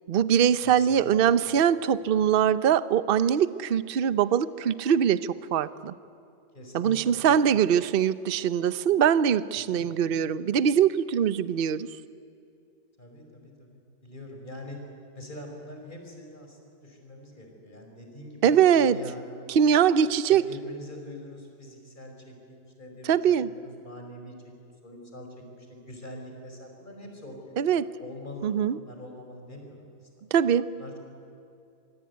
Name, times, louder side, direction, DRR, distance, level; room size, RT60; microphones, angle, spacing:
voice 1, 0.1-5.9 6.7-11.9 18.4-19.0 19.5-20.4 23.0-23.5 27.6-27.9 28.4-28.8 30.3-30.7, right 8 dB, 55° right, 15 dB, 0.6 m, -22 dB
voice 2, 0.6-1.3 6.5-7.4 9.5-9.8 13.0-14.8 15.1-19.2 19.7-24.3 24.6-27.6 28.0-28.5 28.9-30.1 30.7-31.0, left 1 dB, 25° left, 2 dB, 5.0 m, -44 dB
24.5 x 24.0 x 9.6 m, 2.6 s
omnidirectional pair, 1.8 m